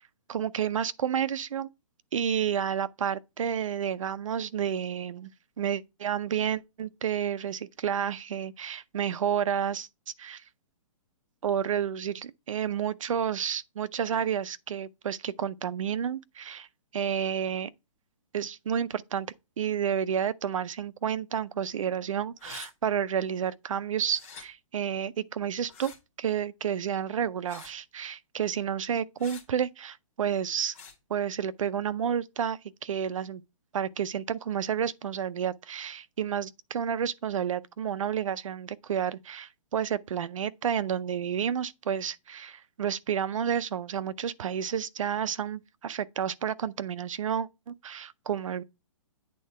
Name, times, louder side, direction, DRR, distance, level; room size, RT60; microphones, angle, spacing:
voice 1, 0.3-1.7 2.1-5.3 5.6-9.9 10.2-10.4 11.4-16.7 16.9-17.7 18.3-25.9 26.2-30.7 31.1-33.4 33.7-48.6, right 8 dB, 75° right, 0.5 m, -30 dB
sound 1, 22.4-22.7 24.1-24.4 25.7-26.0 27.5-27.8 29.2-29.4 30.7-30.9, left 6 dB, 25° left, 1.6 m, -46 dB
8.5 x 3.7 x 4.2 m
hypercardioid pair, 175°, 17 cm